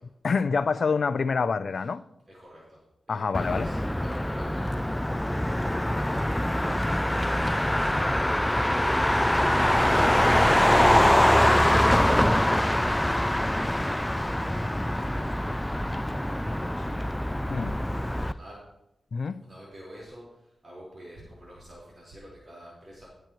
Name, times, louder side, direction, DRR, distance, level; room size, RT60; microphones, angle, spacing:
voice 1, 0.2-2.0 3.1-3.7 17.5-17.7 19.1-19.4, left 5 dB, 70° left, 0.5 m, -26 dB
voice 2, 2.3-2.8 3.1-4.7 5.2-10.9 11.2-17.0 17.4-18.6 19.4-23.1, equal, 55° right, 4.6 m, -48 dB
Motor vehicle (road), 3.3-18.3, left 1 dB, 10° left, 0.4 m, -24 dB
17.0 x 9.1 x 3.1 m
wide cardioid pair, 90°, 0 cm